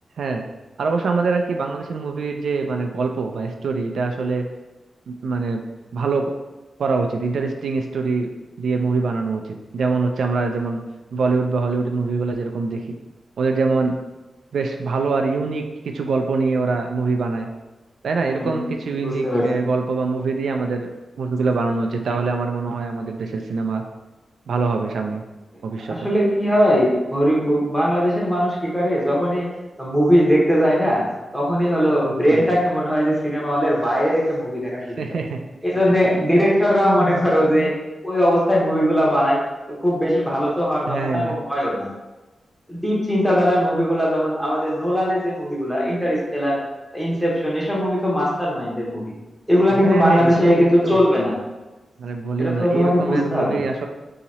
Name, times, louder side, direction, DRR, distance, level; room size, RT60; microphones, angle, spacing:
voice 1, 0.8-4.4 5.1-5.6 5.9-6.3 6.8-8.3 8.6-10.8 11.1-12.8 13.4-13.9 14.5-17.5 18.0-20.9 21.2-23.8 24.5-25.2 25.6-26.0 32.3-32.5 35.0-35.4 36.7-37.7 40.9-41.3 49.7-51.0 52.0-53.9, right 4 dB, 85° right, 4 dB, 0.3 m, -24 dB
voice 2, 18.2-18.6 19.0-19.5 25.9-29.5 29.8-31.0 31.3-35.0 35.6-37.7 38.0-39.4 39.7-41.9 42.7-46.6 46.9-49.0 49.5-51.3 52.4-53.6, equal, 5° left, -5 dB, 0.9 m, -19 dB
2.8 x 2.8 x 4.1 m, 1.1 s
wide cardioid pair, 175°, 0 cm